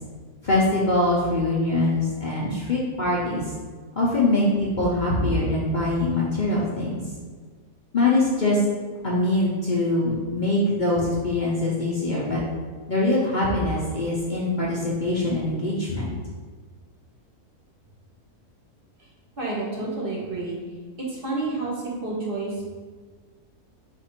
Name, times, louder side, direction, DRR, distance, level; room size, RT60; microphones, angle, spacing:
voice 1, 0.4-3.4 4.0-7.0 7.9-8.6 9.0-12.4 12.9-16.1, left 2 dB, 65° left, -5 dB, 0.4 m, -23 dB
voice 2, 19.4-20.6 21.0-22.7, right 3 dB, 45° right, -4 dB, 0.8 m, -29 dB
4.3 x 2.5 x 4.3 m, 1.5 s
omnidirectional pair, 1.6 m